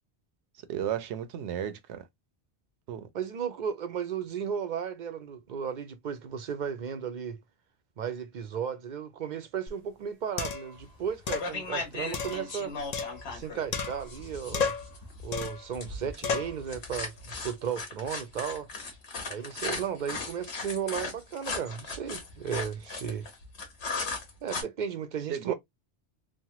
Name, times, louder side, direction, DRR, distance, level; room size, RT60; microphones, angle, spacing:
voice 1, 0.7-2.1 2.9-3.1 25.3-25.5, right 10 dB, 80° right, 0.9 m, -33 dB
voice 2, 3.1-7.4 8.0-12.7 13.3-14.7 15.2-18.7 19.3-23.3 24.4-25.5, right 8 dB, 60° right, 0.5 m, -35 dB
sound 1, 9.7-9.8 10.4-10.8 11.3-11.5 12.1-13.4 13.7-14.2 14.5-14.9 15.3-15.7 16.2-16.6, left 5 dB, 50° left, 0.5 m, -32 dB
sound 2, 10.8-11.1 11.4-24.6, left 4 dB, 70° left, 1.3 m, -37 dB
3.1 x 2.2 x 2.8 m
omnidirectional pair, 1.1 m